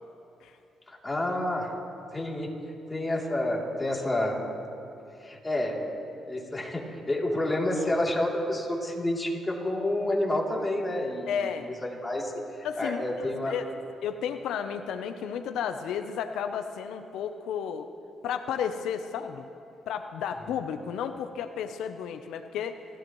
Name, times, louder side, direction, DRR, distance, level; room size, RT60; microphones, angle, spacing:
voice 1, 0.9-1.7 2.1-2.5 2.9-4.4 5.2-5.8 6.3-13.5, left 1 dB, 15° left, -2 dB, 3.0 m, -29 dB
voice 2, 11.3-11.7 12.6-13.7 14.0-17.9 18.2-19.5 19.9-22.8, left 8 dB, 85° left, 8 dB, 0.7 m, -33 dB
27.5 x 14.5 x 3.1 m, 2.7 s
cardioid pair, 100°, 0 cm